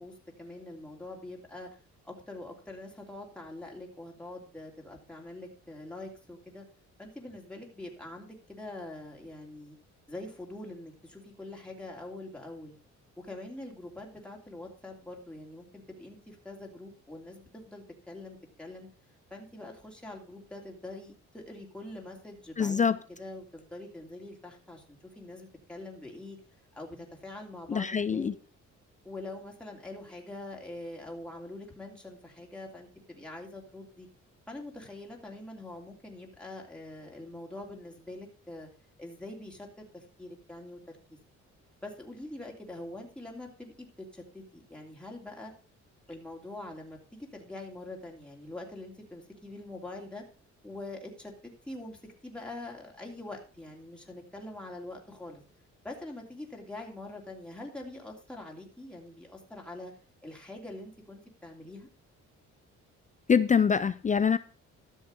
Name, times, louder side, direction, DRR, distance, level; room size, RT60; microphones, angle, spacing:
voice 1, 0.0-1.7 2.0-6.6 7.0-9.8 10.1-12.8 13.2-18.9 19.3-26.4 26.7-28.3 29.0-34.1 34.5-38.7 39.0-41.0 41.8-43.9 44.1-45.5 46.1-50.2 50.6-55.4 55.8-59.9 60.2-61.9, left 2 dB, 5° left, 2.9 m, -44 dB
voice 2, 22.6-23.0 27.7-28.3 63.3-64.4, left 6 dB, 25° left, 0.5 m, -24 dB
13.0 x 6.4 x 5.2 m
cardioid pair, 90°, 30 cm